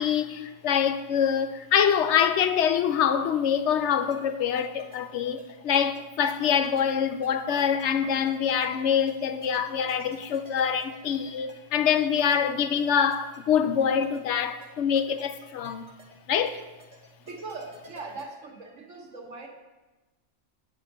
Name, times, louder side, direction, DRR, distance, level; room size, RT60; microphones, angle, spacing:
voice 1, 0.0-15.9 16.3-16.6, left 8 dB, 75° left, 0.9 m, -25 dB
sound 1, 4.1-18.8, right 1 dB, 35° right, 1.2 m, -51 dB
voice 2, 17.2-19.5, right 3 dB, 85° right, 1.5 m, -40 dB
8.8 x 4.9 x 5.9 m
omnidirectional pair, 1.3 m